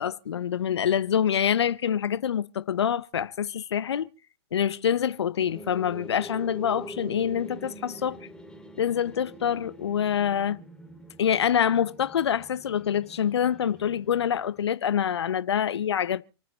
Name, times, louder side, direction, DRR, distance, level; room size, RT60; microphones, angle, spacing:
voice 1, 0.0-4.1 4.5-8.2 8.8-10.6 11.2-16.2, left 8 dB, 75° left, 0.9 m, -26 dB
sound 1, 5.4-14.7, right 1 dB, 5° left, 2.3 m, -45 dB
28.0 x 9.3 x 4.0 m
hypercardioid pair, 110°, 14 cm